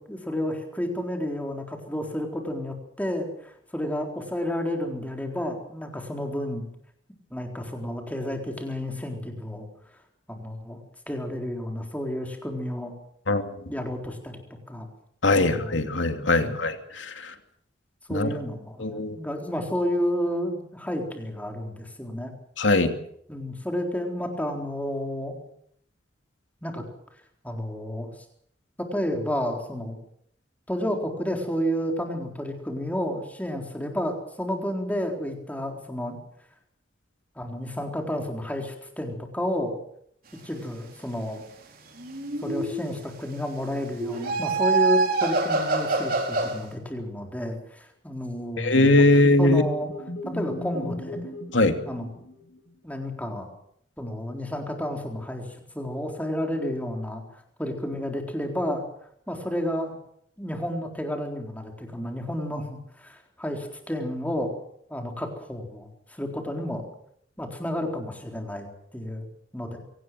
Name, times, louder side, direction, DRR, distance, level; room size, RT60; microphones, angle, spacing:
voice 1, 0.1-6.6 7.3-9.6 10.3-10.8 11.1-12.9 13.7-14.4 14.7-14.9 15.3-15.8 16.4-16.6 18.1-22.3 23.3-25.4 26.6-26.8 27.4-28.1 28.8-30.0 30.7-36.2 37.4-39.7 40.4-41.4 42.4-49.1 49.4-49.9 50.3-51.2 51.9-52.1 52.8-53.5 54.0-55.5 55.7-57.2 57.6-58.8 59.3-60.0 60.4-64.5 64.9-66.8 67.4-68.7 68.9-69.2 69.5-69.8, left 1 dB, 10° left, 3 dB, 4.0 m, -31 dB
voice 2, 15.2-17.3 18.1-18.3 18.8-19.2 22.6-22.9 48.6-49.6 51.5-51.8, left 2 dB, 85° left, 7 dB, 2.7 m, -21 dB
sound 1, 42.0-43.0 44.0-46.6, right 3 dB, 50° right, 4.2 m, -25 dB
sound 2, 49.5-52.7, left 1 dB, 65° left, 6.8 m, -37 dB
23.5 x 18.0 x 7.8 m, 0.68 s
head